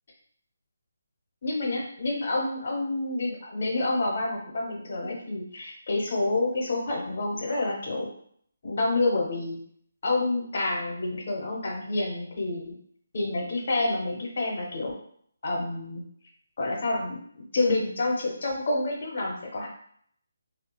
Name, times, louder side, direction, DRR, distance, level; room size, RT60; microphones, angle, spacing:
voice 1, 1.4-8.1 8.6-9.6 10.0-12.7 13.1-15.0 15.4-16.0 16.6-19.7, left 2 dB, 45° left, 0 dB, 0.9 m, -28 dB
3.6 x 2.4 x 2.2 m, 0.64 s
figure-of-eight pair, 145°, 0 cm